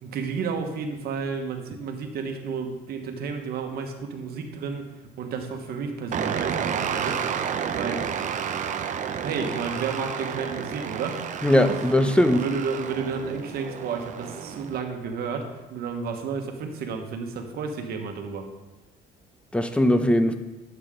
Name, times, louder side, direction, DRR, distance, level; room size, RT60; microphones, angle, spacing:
voice 1, 0.0-4.9 5.2-7.3 7.8-8.0 9.2-11.2 12.3-18.5, right 5 dB, 65° right, 4 dB, 1.3 m, -31 dB
sound 1, 6.1-14.8, right 7 dB, 45° right, 0.7 m, -31 dB
voice 2, 11.4-12.4 19.5-20.3, left 1 dB, 5° left, 8 dB, 0.8 m, -20 dB
10.5 x 8.0 x 3.8 m, 1.1 s
cardioid pair, 110°, 17 cm